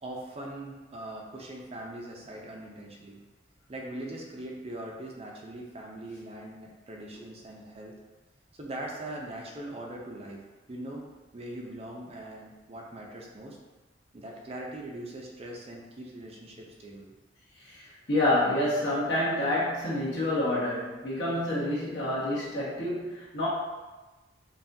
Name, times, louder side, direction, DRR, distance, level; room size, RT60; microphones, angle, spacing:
voice 1, 0.0-3.2 3.7-7.9 8.6-13.6 14.1-17.1, right 1 dB, 30° right, -1 dB, 0.5 m, -41 dB
voice 2, 17.6-23.5, left 1 dB, 70° left, -8 dB, 1.4 m, -28 dB
5.5 x 2.4 x 2.7 m, 1.2 s
head